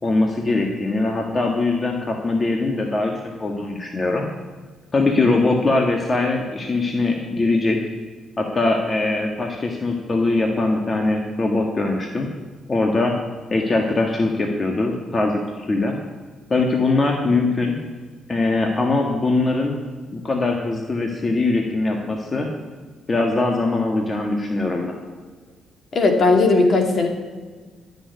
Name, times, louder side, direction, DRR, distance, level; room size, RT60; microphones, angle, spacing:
voice 1, 0.0-3.1 3.4-4.2 4.9-7.8 8.4-12.3 12.7-13.1 13.5-15.9 16.5-17.7 18.3-19.8 20.2-22.5 23.1-25.0, left 2 dB, 30° left, 1 dB, 1.8 m, -21 dB
voice 2, 25.9-27.1, left 3 dB, 50° left, 3 dB, 2.4 m, -17 dB
12.5 x 6.9 x 9.6 m, 1.4 s
cardioid pair, 90°, 0 cm